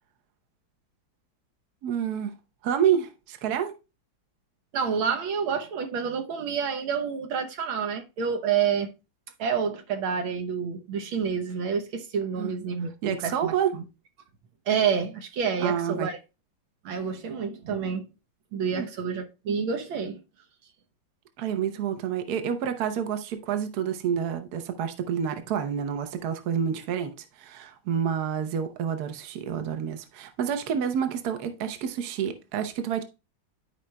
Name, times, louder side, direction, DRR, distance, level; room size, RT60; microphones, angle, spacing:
voice 1, 1.8-2.3 2.6-3.7 12.4-12.5 13.0-13.7 15.6-16.1 18.7-18.9 21.4-33.0, right 8 dB, 60° right, 1.3 m, -28 dB
voice 2, 4.7-8.9 9.4-13.8 14.7-16.2 16.9-18.1 18.5-20.2, right 6 dB, 85° right, 1.8 m, -28 dB
12.5 x 4.9 x 2.2 m
omnidirectional pair, 2.2 m